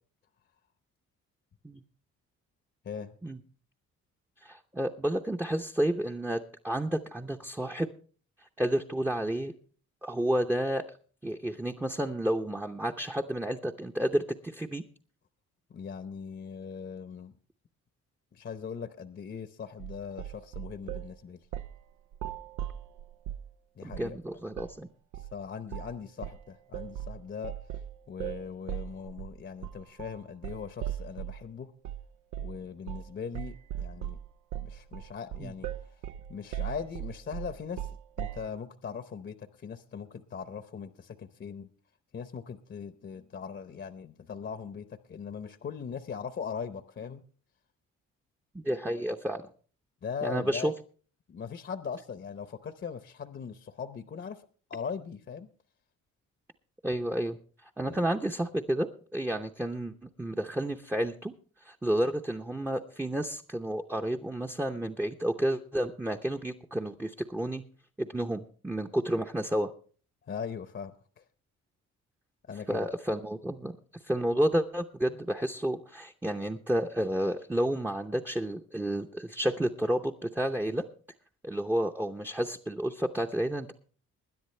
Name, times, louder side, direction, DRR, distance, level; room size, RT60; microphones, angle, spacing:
voice 1, 2.8-3.1 15.7-17.3 18.3-21.4 23.8-24.4 25.2-27.5 28.1-31.7 32.4-34.2 34.6-35.9 36.3-37.9 38.2-41.7 42.1-47.2 50.0-50.7 51.3-55.5 57.9-58.0 70.2-71.2 72.5-72.9, left 6 dB, 40° left, 0.8 m, -40 dB
voice 2, 4.4-7.9 8.6-9.5 10.0-10.8 11.2-14.8 23.8-24.9 35.4-35.5 48.5-49.4 50.2-50.7 56.8-57.4 57.8-61.3 61.6-67.6 68.0-69.7 72.7-73.7 74.0-80.8 81.4-83.7, right 1 dB, 5° right, 0.7 m, -31 dB
sound 1, 19.8-21.1 21.5-21.8 22.1-23.5 23.9-24.2 24.5-24.8 25.1-25.4 25.7-26.0 26.2-31.4 31.8-32.0 32.3-32.6 32.9-33.1 33.3-38.5, right 11 dB, 90° right, 0.5 m, -38 dB
21.0 x 10.0 x 3.3 m
cardioid pair, 90°, 30 cm